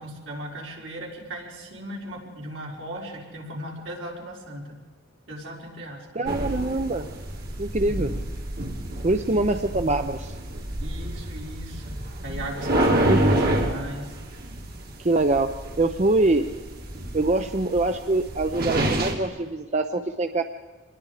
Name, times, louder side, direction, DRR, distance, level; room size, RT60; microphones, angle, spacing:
voice 1, 0.0-4.8 5.3-6.2 9.2-9.5 10.8-14.2, right 1 dB, 70° right, -2 dB, 5.0 m, -37 dB
voice 2, 6.1-7.1 7.6-8.1 9.0-10.3 13.1-13.2 15.0-16.5 17.1-20.4, right 2 dB, 35° right, 7 dB, 0.7 m, -24 dB
sound 1, 6.3-19.1, right 1 dB, 55° right, 2.7 m, -28 dB
26.0 x 21.0 x 5.0 m, 1.3 s
head